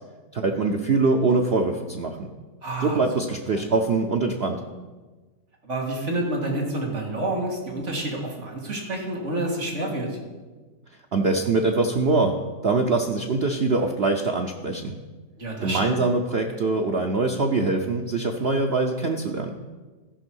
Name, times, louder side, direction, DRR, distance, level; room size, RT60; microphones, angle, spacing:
voice 1, 0.3-2.3 2.8-4.6 11.1-12.3 12.6-15.0 15.6-19.5, right 3 dB, 80° right, 3 dB, 0.5 m, -23 dB
voice 2, 2.6-3.0 3.5-3.6 5.6-10.2 15.4-16.0, right 1 dB, 40° right, -1 dB, 2.1 m, -28 dB
14.0 x 5.3 x 6.2 m, 1.3 s
omnidirectional pair, 1.9 m